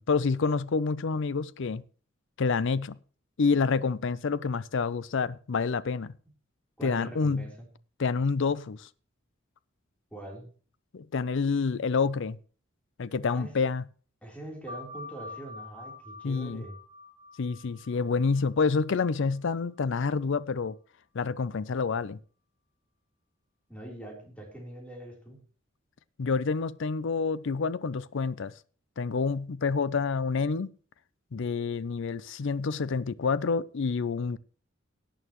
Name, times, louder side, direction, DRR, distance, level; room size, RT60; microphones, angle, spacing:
voice 1, 0.0-1.8 2.4-3.0 3.4-6.1 6.8-7.5 8.0-8.9 10.9-12.4 13.0-13.8 16.2-16.6 17.4-20.8 21.1-22.2 26.2-28.5 29.0-30.7 31.3-34.4, left 4 dB, 65° left, 0.5 m, -28 dB
voice 2, 6.8-7.5 10.1-10.5 13.3-13.5 14.2-16.8 23.7-25.4, right 1 dB, 5° left, 3.6 m, -43 dB
sound 1, 14.7-19.8, left 2 dB, 35° right, 2.3 m, -46 dB
17.5 x 8.8 x 3.1 m
head